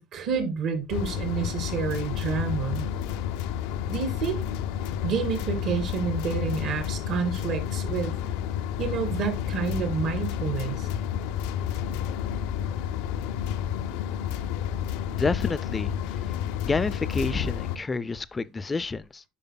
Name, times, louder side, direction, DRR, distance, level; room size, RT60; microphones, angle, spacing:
voice 1, 0.0-2.9 3.9-4.4 5.0-8.1 8.8-10.9, right 6 dB, 50° right, 2.0 m, -29 dB
sound 1, 0.9-17.8, left 9 dB, 85° left, 0.7 m, -30 dB
voice 2, 15.1-15.9 16.6-19.2, left 4 dB, 15° left, 0.4 m, -29 dB
11.0 x 5.0 x 2.2 m
cardioid pair, 150°, 0 cm